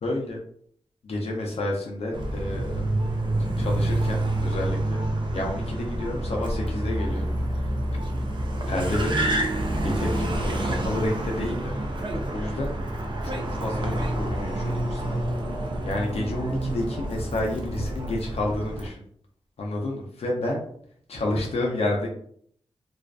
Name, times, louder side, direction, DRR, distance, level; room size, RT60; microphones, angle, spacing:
voice 1, 0.0-0.4 1.0-2.8 3.6-5.0 5.3-7.8 8.7-9.5 9.8-11.8 12.1-12.7 13.2-15.2 15.8-19.0 19.6-20.6 21.1-22.1, left 1 dB, 75° left, -1 dB, 0.6 m, -30 dB
Car, 2.1-18.9, right 1 dB, 50° right, 0.4 m, -28 dB
2.5 x 2.4 x 2.2 m, 0.63 s
wide cardioid pair, 85°, 11 cm